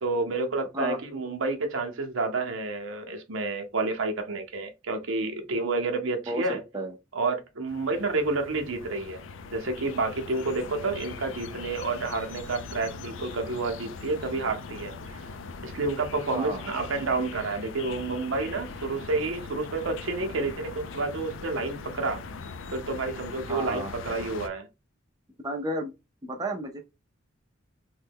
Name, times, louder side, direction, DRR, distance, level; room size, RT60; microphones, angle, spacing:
voice 1, 0.0-6.6 7.1-9.2 9.5-15.2 15.6-22.2 22.7-24.7, right 3 dB, 80° right, 0.7 m, -30 dB
voice 2, 6.3-6.9 16.3-16.7 23.5-23.9 25.4-25.9 26.2-26.8, right 1 dB, 20° right, 0.5 m, -32 dB
sound 1, 7.7-24.5, left 4 dB, 65° left, 0.4 m, -41 dB
3.1 x 2.2 x 3.4 m
head